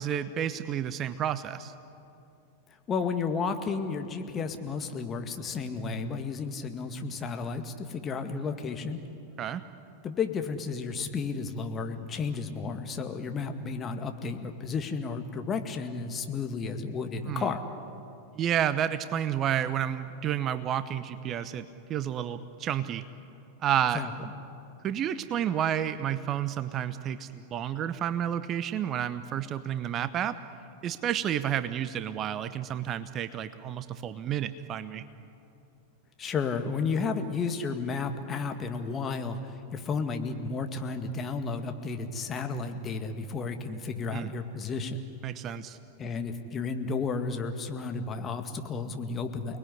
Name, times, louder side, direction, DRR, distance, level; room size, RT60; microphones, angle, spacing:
voice 1, 0.0-1.7 9.4-9.6 17.3-17.5 18.3-23.0 23.6-24.0 24.8-30.4 30.8-35.0 44.1-44.3 45.2-45.8, right 10 dB, 30° right, 13 dB, 0.9 m, -30 dB
voice 2, 2.9-9.0 10.0-17.6 23.9-24.3 36.2-45.0 46.0-49.6, left 4 dB, 25° left, 6 dB, 2.0 m, -32 dB
29.5 x 20.0 x 9.9 m, 2.7 s
figure-of-eight pair, 90°, 0 cm